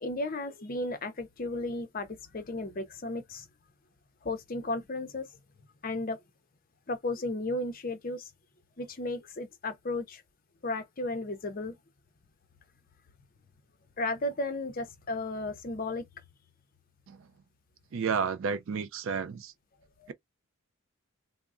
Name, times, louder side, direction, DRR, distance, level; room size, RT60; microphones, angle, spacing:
voice 1, 0.0-3.5 4.2-5.3 5.8-6.2 6.9-8.3 8.8-10.2 10.6-11.8 14.0-16.1 20.0-20.1, left 2 dB, 40° left, 0.6 m, -34 dB
voice 2, 17.9-19.5, right 6 dB, 60° right, 0.4 m, -31 dB
3.5 x 2.0 x 2.4 m
head